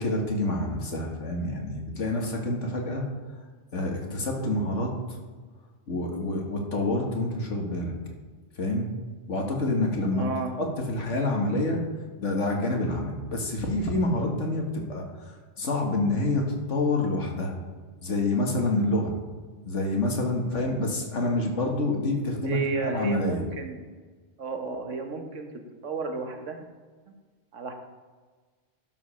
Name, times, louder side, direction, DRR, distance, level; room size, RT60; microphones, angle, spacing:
voice 1, 0.0-3.0 3.7-4.9 5.9-7.9 8.6-8.9 9.3-10.3 10.6-11.8 12.2-15.1 15.6-17.5 18.0-19.1 19.7-23.5, left 2 dB, 80° left, 1 dB, 2.0 m, -27 dB
voice 2, 10.1-10.5 22.4-23.8 24.4-25.5 25.8-26.6 27.5-27.7, right 4 dB, 90° right, 4 dB, 1.5 m, -32 dB
12.0 x 5.1 x 5.7 m, 1.4 s
omnidirectional pair, 1.2 m